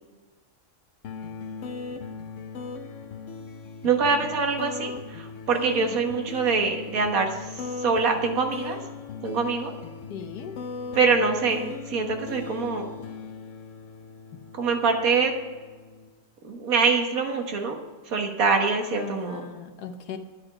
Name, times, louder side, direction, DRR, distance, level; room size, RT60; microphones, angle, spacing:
sound 1, 1.0-16.1, left 4 dB, 60° left, 1.1 m, -38 dB
voice 1, 3.8-7.3 7.8-8.8 9.2-9.7 11.0-12.9 14.6-15.3 16.4-17.8 18.1-19.4, right 4 dB, 60° right, 3 dB, 1.8 m, -24 dB
voice 2, 10.1-10.6 19.0-20.2, left 7 dB, 85° left, 7 dB, 1.4 m, -38 dB
10.5 x 8.9 x 5.0 m, 1.4 s
omnidirectional pair, 1.7 m